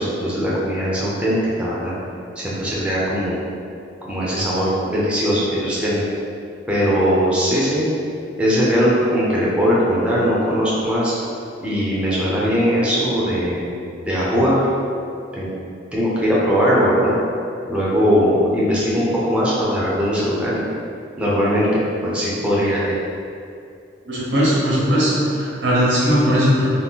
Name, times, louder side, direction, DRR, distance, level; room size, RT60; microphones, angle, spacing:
voice 1, 0.0-1.9 2.4-3.4 4.0-6.0 6.7-7.9 8.4-11.1 11.6-13.7 14.1-14.6 15.3-15.5 15.9-17.2 17.7-20.7 21.2-21.7 22.0-22.9, equal, 5° right, -7 dB, 0.5 m, -20 dB
voice 2, 24.0-26.6, equal, 85° right, -7 dB, 1.0 m, -18 dB
2.7 x 2.2 x 3.5 m, 2.5 s
head